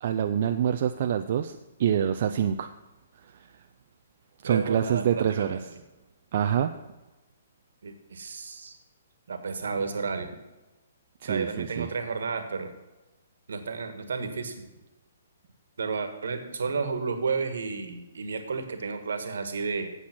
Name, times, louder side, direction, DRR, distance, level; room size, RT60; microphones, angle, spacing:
voice 1, 0.0-2.7 4.4-5.6 6.3-6.7 11.2-11.9, right 9 dB, 50° right, 7 dB, 0.5 m, -26 dB
voice 2, 4.4-5.6 7.8-8.8 9.3-10.3 11.2-12.7 13.5-14.7 15.8-19.9, right 4 dB, 75° right, 7 dB, 1.6 m, -32 dB
8.6 x 8.0 x 6.0 m, 1.1 s
hypercardioid pair, 140°, 0 cm